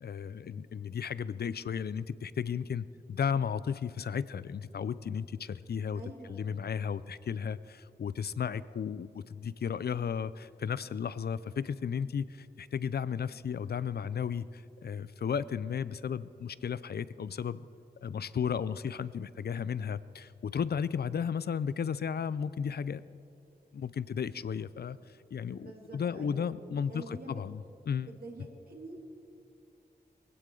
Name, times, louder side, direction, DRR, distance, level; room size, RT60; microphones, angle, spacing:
voice 1, 0.0-6.0 6.3-17.7 18.0-23.0 23.7-25.0 25.3-27.6 27.9-28.1, left 7 dB, 70° left, 17 dB, 0.5 m, -34 dB
voice 2, 5.9-6.4 25.5-26.5 26.9-27.4 28.0-29.1, right 2 dB, 60° right, -1 dB, 2.7 m, -46 dB
20.0 x 16.5 x 3.8 m, 2.5 s
wide cardioid pair, 95°, 17 cm